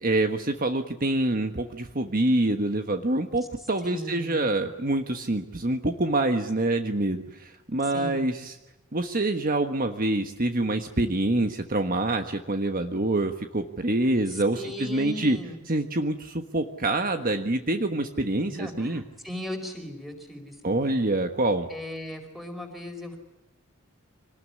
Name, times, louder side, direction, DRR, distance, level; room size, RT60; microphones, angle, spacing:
voice 1, 0.0-8.6 8.9-15.4 15.7-19.0 20.6-21.7, right 2 dB, 40° right, 6 dB, 1.4 m, -26 dB
voice 2, 3.8-4.5 7.9-8.3 14.5-15.6 18.5-20.9 21.7-23.2, left 1 dB, ahead, 4 dB, 4.9 m, -37 dB
26.0 x 19.5 x 9.8 m, 0.93 s
head